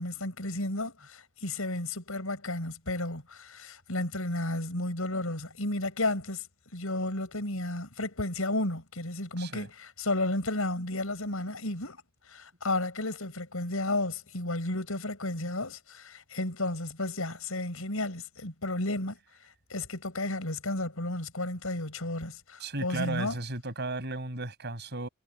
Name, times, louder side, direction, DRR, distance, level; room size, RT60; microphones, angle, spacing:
voice 1, 0.0-6.4 6.7-12.0 12.3-19.2 19.7-23.3, left 2 dB, 85° left, 5.8 m, -32 dB
voice 2, 9.4-9.7 22.6-25.1, right 2 dB, 55° right, 6.1 m, -35 dB
head